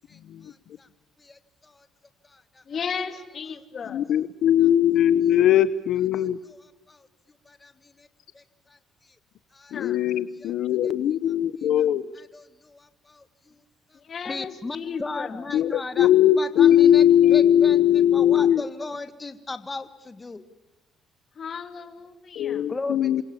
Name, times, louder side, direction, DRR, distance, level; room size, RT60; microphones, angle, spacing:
voice 1, 0.1-0.9 1.2-1.9 2.2-2.6 3.5-3.6 4.6-4.7 6.1-7.1 7.4-8.1 8.3-8.8 9.5-9.9 10.4-10.5 10.8-10.9 12.2-13.6 13.9-14.0 14.2-17.0 17.3-17.8 18.1-20.4 22.7-23.2, left 3 dB, 20° left, 1.6 m, -37 dB
voice 2, 2.7-4.1 9.7-10.2 13.9-15.5 21.3-22.7, left 6 dB, 45° left, 2.7 m, -35 dB
voice 3, 3.9-6.4 9.7-12.1 15.5-18.6 22.3-23.2, left 11 dB, 70° left, 0.9 m, -20 dB
28.5 x 25.0 x 7.1 m
cardioid pair, 110°, 0 cm